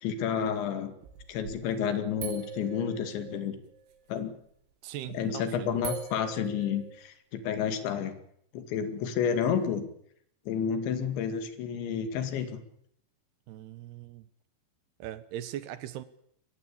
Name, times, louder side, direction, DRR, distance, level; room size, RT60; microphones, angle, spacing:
voice 1, 0.0-0.9 1.3-3.6 4.1-4.3 5.1-8.1 8.5-9.9 10.5-12.6, left 7 dB, 65° left, 4.3 m, -30 dB
sound 1, 1.0-1.7 2.2-3.9 5.0-5.3 5.9-7.1, right 6 dB, 85° right, 4.9 m, -41 dB
voice 2, 4.8-5.9 13.5-14.3 15.0-16.0, right 12 dB, 70° right, 2.7 m, -40 dB
23.0 x 20.0 x 8.7 m
omnidirectional pair, 5.8 m